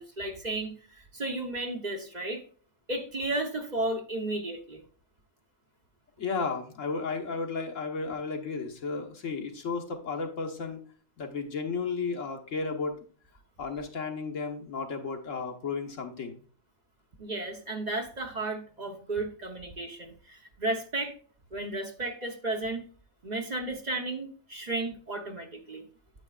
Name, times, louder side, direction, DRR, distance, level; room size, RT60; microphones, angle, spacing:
voice 1, 0.0-2.4 2.9-4.8 17.2-21.1 21.5-22.9 23.2-25.9, right 2 dB, 35° right, 4 dB, 1.0 m, -33 dB
voice 2, 6.2-10.8 11.2-12.9 13.6-16.4, left 4 dB, 75° left, 2 dB, 1.6 m, -33 dB
9.0 x 7.9 x 2.4 m, 0.43 s
omnidirectional pair, 1.3 m